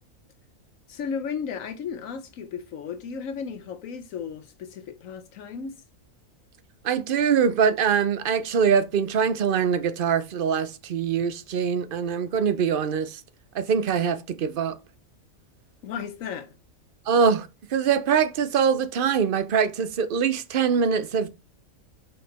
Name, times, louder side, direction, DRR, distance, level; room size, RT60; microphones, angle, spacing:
voice 1, 0.9-5.8 15.8-16.5, left 6 dB, 80° left, 1.2 m, -34 dB
voice 2, 6.8-13.2 13.5-14.8 17.1-21.3, right 6 dB, 50° right, 0.7 m, -23 dB
5.7 x 5.7 x 4.1 m
omnidirectional pair, 1.4 m